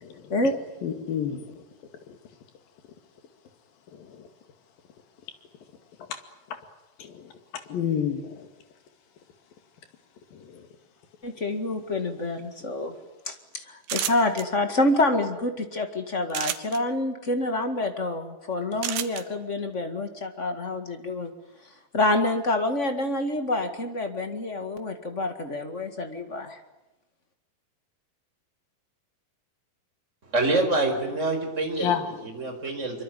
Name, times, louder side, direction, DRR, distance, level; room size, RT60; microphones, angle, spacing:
voice 1, 0.8-1.6 7.0-7.2 7.7-8.5 10.5-10.6 31.8-32.1, left 8 dB, 70° left, 7 dB, 4.0 m, -29 dB
voice 2, 11.2-12.9 13.3-13.4 13.9-21.3 21.9-26.5, left 2 dB, 30° left, 7 dB, 1.3 m, -27 dB
sound 1, 13.8-14.4 16.3-16.8 18.8-19.2, right 11 dB, 85° right, 3.3 m, -29 dB
voice 3, 30.3-31.9 32.2-33.0, right 2 dB, 20° right, 4 dB, 4.9 m, -26 dB
24.5 x 24.5 x 9.2 m, 0.96 s
omnidirectional pair, 4.4 m